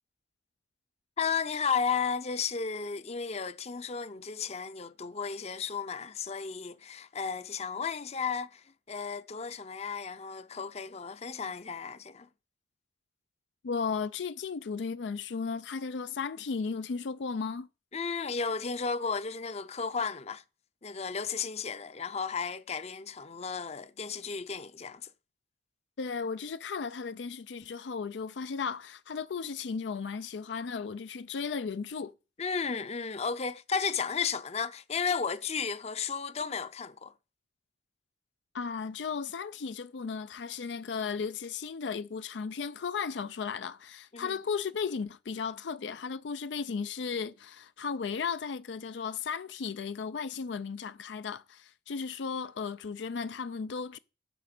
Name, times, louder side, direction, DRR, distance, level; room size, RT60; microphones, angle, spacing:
voice 1, 1.2-12.3 17.9-20.4 20.8-25.0 32.4-37.1 44.1-44.4, left 5 dB, 35° left, 0.6 m, -34 dB
voice 2, 13.6-17.7 26.0-32.1 38.5-54.0, left 5 dB, 85° left, 0.5 m, -35 dB
10.0 x 6.4 x 6.0 m
head